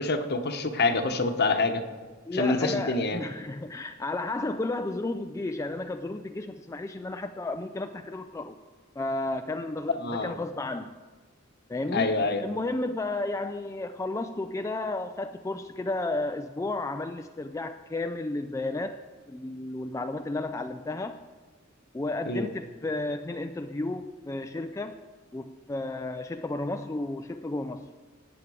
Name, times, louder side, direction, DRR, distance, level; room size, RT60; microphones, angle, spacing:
voice 1, 0.0-1.8 2.3-3.2 10.0-10.3 11.9-12.4 22.2-22.5, left 3 dB, 50° left, 7 dB, 1.0 m, -26 dB
voice 2, 2.3-8.6 9.0-10.9 11.7-19.0 19.3-21.2 21.9-25.0 25.3-27.9, left 2 dB, 15° left, 6 dB, 0.3 m, -32 dB
17.5 x 7.2 x 4.9 m, 1.4 s
head